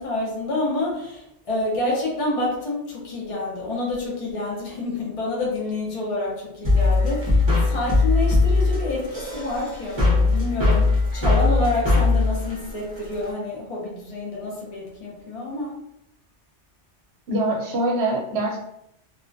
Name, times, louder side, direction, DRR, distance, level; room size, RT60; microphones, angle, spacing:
voice 1, 0.0-10.9 11.1-15.7, left 2 dB, 40° left, -4 dB, 0.5 m, -28 dB
sound 1, 6.6-13.3, left 3 dB, 30° right, 0.6 m, -20 dB
voice 2, 17.3-18.6, right 1 dB, 65° right, -1 dB, 0.8 m, -24 dB
2.3 x 2.1 x 2.5 m, 0.76 s
omnidirectional pair, 1.2 m